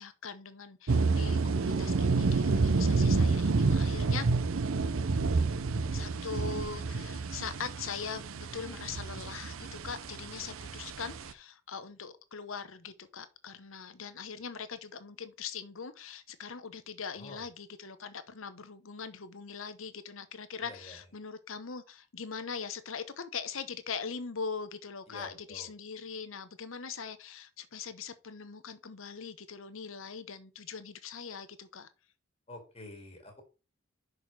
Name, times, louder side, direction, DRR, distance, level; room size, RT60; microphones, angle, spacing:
voice 1, 0.0-4.3 5.9-31.9, left 5 dB, 70° left, 0.9 m, -41 dB
sound 1, 0.9-11.3, right 4 dB, 75° right, 0.6 m, -29 dB
voice 2, 20.6-21.0 25.1-25.7 32.5-33.4, left 2 dB, 30° left, 1.8 m, -48 dB
6.2 x 4.9 x 5.9 m
head